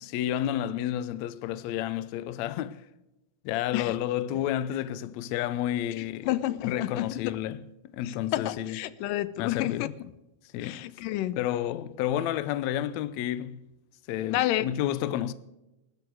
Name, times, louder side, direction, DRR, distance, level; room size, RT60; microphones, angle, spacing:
voice 1, 0.1-2.8 3.4-6.3 6.6-7.6 7.9-8.8 9.4-9.9 10.5-10.8 11.4-13.6 14.1-15.3, left 12 dB, 75° left, 1.8 m, -30 dB
voice 2, 6.3-7.3 8.3-9.9 10.6-11.4 14.3-14.6, left 15 dB, 90° left, 2.4 m, -29 dB
20.5 x 12.5 x 4.7 m
omnidirectional pair, 3.7 m